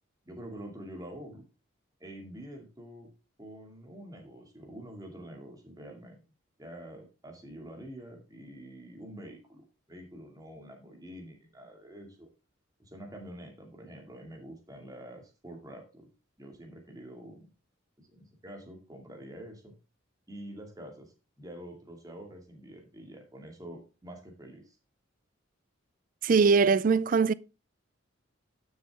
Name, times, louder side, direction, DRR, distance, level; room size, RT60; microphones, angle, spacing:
voice 1, 0.2-1.4 2.0-3.1 3.4-6.2 6.6-12.3 12.8-16.0 16.4-17.5 18.0-19.7 20.3-24.8, right 1 dB, 20° right, 2.3 m, -46 dB
voice 2, 26.2-27.3, right 5 dB, 40° right, 0.3 m, -22 dB
11.5 x 6.5 x 3.6 m
head